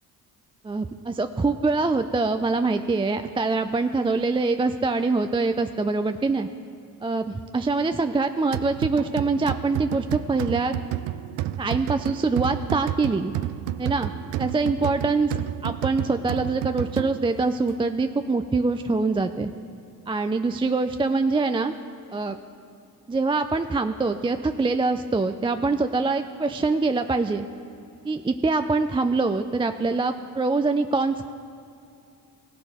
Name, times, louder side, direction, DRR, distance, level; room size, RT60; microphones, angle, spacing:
voice 1, 0.6-6.5 7.0-10.8 11.6-13.3 13.8-14.1 14.4-19.5 20.1-21.7 22.1-22.4 23.1-27.5 28.0-31.3, right 3 dB, 15° right, 8 dB, 0.3 m, -24 dB
sound 1, 8.5-17.4, right 13 dB, 75° right, 0.5 m, -31 dB
17.0 x 6.2 x 4.3 m, 2.6 s
hypercardioid pair, 45°, 45 cm